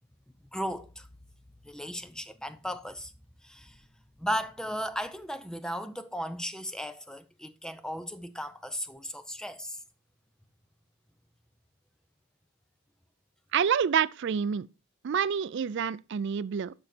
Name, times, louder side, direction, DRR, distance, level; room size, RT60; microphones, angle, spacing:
voice 1, 0.5-1.1 1.6-3.1 3.4-3.8 4.2-9.8, equal, 5° left, 0.6 m, -36 dB
voice 2, 13.5-14.7 15.0-16.7, right 7 dB, 55° right, 0.3 m, -27 dB
12.0 x 5.2 x 4.3 m
head